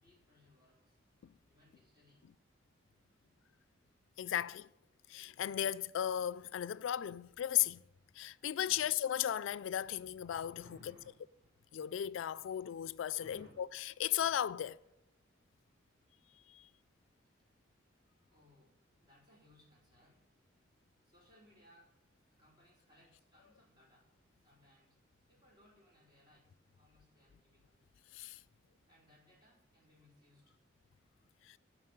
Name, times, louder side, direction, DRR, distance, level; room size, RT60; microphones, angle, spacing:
voice 1, 0.0-1.0 1.5-2.3 8.6-8.9 10.5-11.5 13.2-13.7 14.2-14.4 18.3-20.6 21.0-21.9 22.3-24.1 24.4-25.0 25.3-27.9 28.9-30.6 31.4-31.6, left 1 dB, 20° right, 4.9 m, -65 dB
voice 2, 4.2-4.7 5.1-7.8 8.2-10.6 11.7-13.7 14.0-14.8 16.5-16.7 28.1-28.4 31.4-31.6, left 11 dB, 80° left, 0.3 m, -35 dB
11.5 x 6.1 x 9.1 m
head